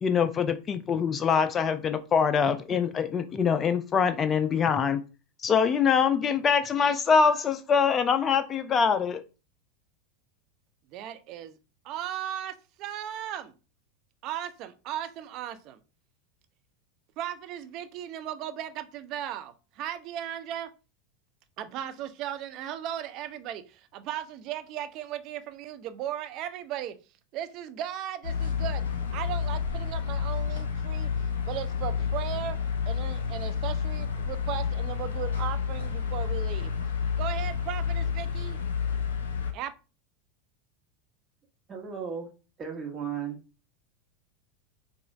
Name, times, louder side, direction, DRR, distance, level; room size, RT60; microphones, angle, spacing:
voice 1, 0.0-5.0 5.4-9.2, left 6 dB, 30° left, 0.4 m, -24 dB
voice 2, 10.9-11.6 11.8-13.5 14.2-15.8 17.2-20.7 21.6-26.9 27.3-28.8 29.1-31.1 31.4-32.6 32.9-36.7 37.2-38.6 39.5-39.7, right 11 dB, 45° right, 0.4 m, -36 dB
sound 1, 28.2-39.5, left 6 dB, 75° left, 0.6 m, -30 dB
voice 3, 41.7-42.3 42.6-43.4, right 7 dB, 25° right, 1.0 m, -35 dB
4.9 x 2.4 x 2.4 m
figure-of-eight pair, 85°, 0 cm